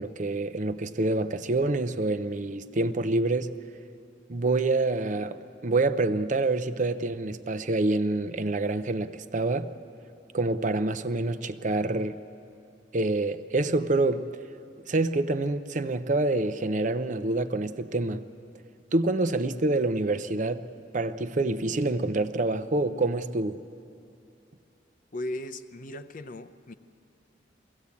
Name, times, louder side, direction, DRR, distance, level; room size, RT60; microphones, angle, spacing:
voice 1, 0.0-3.5 4.3-9.7 10.3-12.2 12.9-14.3 14.9-18.2 18.9-20.7 20.9-23.6, right 2 dB, 40° right, 0.6 m, -27 dB
voice 2, 25.1-26.7, left 1 dB, 45° left, 0.6 m, -37 dB
22.5 x 16.0 x 8.4 m
head